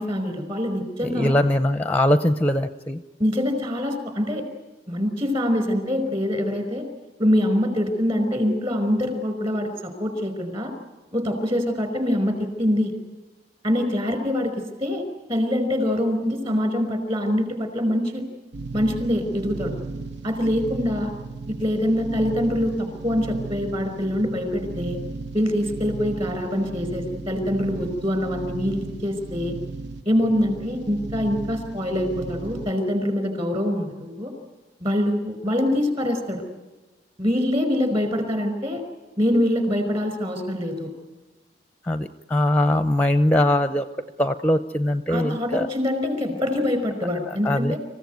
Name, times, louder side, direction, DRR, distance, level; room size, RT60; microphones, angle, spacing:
voice 1, 0.0-1.4 3.2-4.4 4.9-6.8 7.2-10.7 11.1-12.9 13.6-15.0 15.3-18.2 18.7-19.8 20.2-21.1 21.5-25.0 25.3-29.5 30.0-34.3 34.8-36.4 37.2-38.8 39.2-40.9 45.1-47.8, equal, 30° right, 8 dB, 5.1 m, -24 dB
voice 2, 1.0-3.0 41.8-43.9 44.2-45.7 47.3-47.8, left 1 dB, 10° left, 10 dB, 0.7 m, -21 dB
sound 1, 18.5-32.7, right 3 dB, 65° right, 1.1 m, -35 dB
27.0 x 16.0 x 9.4 m, 1.2 s
head